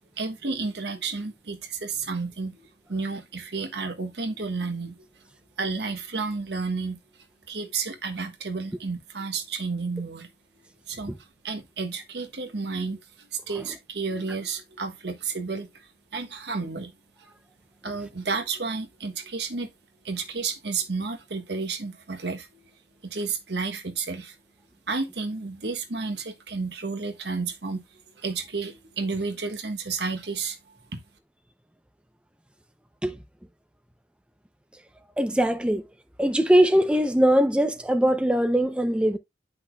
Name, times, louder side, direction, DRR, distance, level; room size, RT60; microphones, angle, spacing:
voice 1, 0.2-2.5 2.9-4.9 5.6-7.0 7.5-10.3 10.9-11.1 11.4-13.0 13.3-15.7 16.1-16.9 17.8-19.7 20.0-22.5 23.0-24.3 24.9-27.8 28.2-30.6 30.9-31.0, right 4 dB, 75° right, 1.4 m, -31 dB
voice 2, 35.2-35.8 36.2-39.2, equal, 5° right, 0.5 m, -21 dB
10.0 x 5.6 x 2.3 m
head